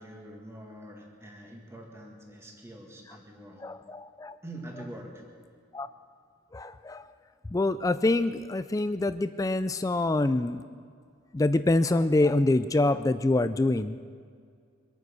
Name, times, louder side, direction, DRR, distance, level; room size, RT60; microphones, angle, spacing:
voice 1, 0.0-3.7 4.4-5.2, right 1 dB, 15° right, 0 dB, 1.8 m, -45 dB
voice 2, 3.6-4.4 5.7-5.9 6.5-7.1 7.5-10.6 11.3-14.0, left 2 dB, 15° left, 12 dB, 0.3 m, -25 dB
24.5 x 9.4 x 6.3 m, 2.1 s
head